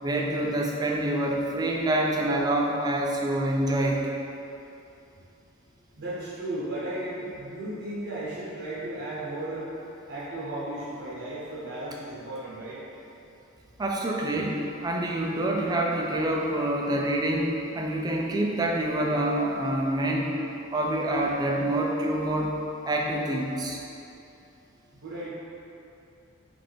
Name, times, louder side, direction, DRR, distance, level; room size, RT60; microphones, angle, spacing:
voice 1, 0.0-4.1 13.8-20.3 20.7-22.5 22.8-23.8, right 1 dB, 20° right, -1 dB, 0.4 m, -26 dB
voice 2, 6.0-9.7 10.1-12.8 25.0-25.3, right 1 dB, 55° right, -9 dB, 0.8 m, -35 dB
3.5 x 3.3 x 3.8 m, 2.8 s
head